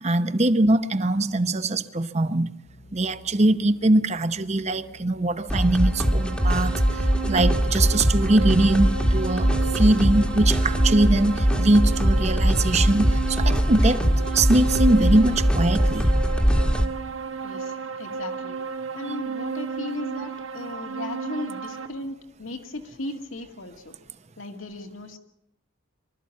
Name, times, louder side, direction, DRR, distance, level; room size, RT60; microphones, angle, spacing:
voice 1, 0.0-2.5 2.9-14.1 14.3-16.1, right 2 dB, 35° right, 0.8 m, -22 dB
sound 1, 2.7-11.5, left 1 dB, 45° left, 1.1 m, -45 dB
sound 2, 5.5-16.9, equal, 5° left, 1.3 m, -22 dB
sound 3, 5.6-21.9, right 6 dB, 80° right, 1.5 m, -33 dB
voice 2, 17.4-18.6 18.9-24.0 24.4-25.2, left 2 dB, 75° left, 2.1 m, -36 dB
24.5 x 13.0 x 8.5 m
head